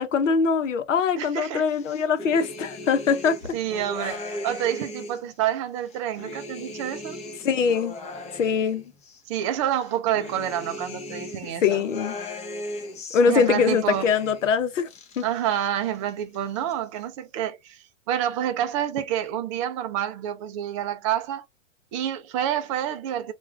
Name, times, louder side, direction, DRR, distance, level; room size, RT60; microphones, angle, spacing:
voice 1, 0.0-3.4 7.4-8.0 8.3-8.8 11.6-12.2 13.1-14.9 15.2-15.3, left 6 dB, 80° left, 0.9 m, -22 dB
voice 2, 1.2-1.7 3.5-7.2 9.3-11.8 13.3-14.1 15.2-21.4 21.9-23.3, right 10 dB, 30° right, 0.4 m, -28 dB
sound 1, 1.7-5.3 5.8-9.2 9.7-14.5 14.8-15.7 15.9-16.7, left 1 dB, 20° left, 0.6 m, -38 dB
2.5 x 2.3 x 3.2 m
hypercardioid pair, 120°, 37 cm